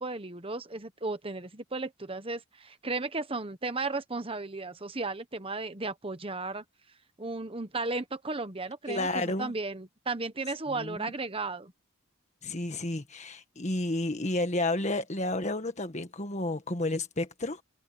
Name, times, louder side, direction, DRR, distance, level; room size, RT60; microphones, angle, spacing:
voice 1, 0.0-6.6 7.2-11.7, right 3 dB, 25° right, 1.2 m, -35 dB
voice 2, 8.9-9.5 10.7-11.1 12.4-17.6, left 2 dB, 35° left, 1.7 m, -31 dB
head